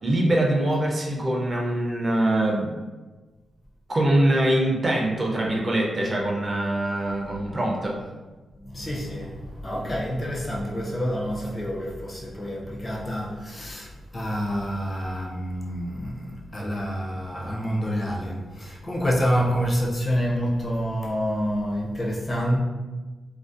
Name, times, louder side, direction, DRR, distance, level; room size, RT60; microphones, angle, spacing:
voice 1, 0.0-2.7 3.9-8.0, right 1 dB, 30° right, 0.4 m, -23 dB
voice 2, 8.6-22.6, equal, 30° left, 0.5 m, -28 dB
2.4 x 2.1 x 2.4 m
wide cardioid pair, 125°, 0 cm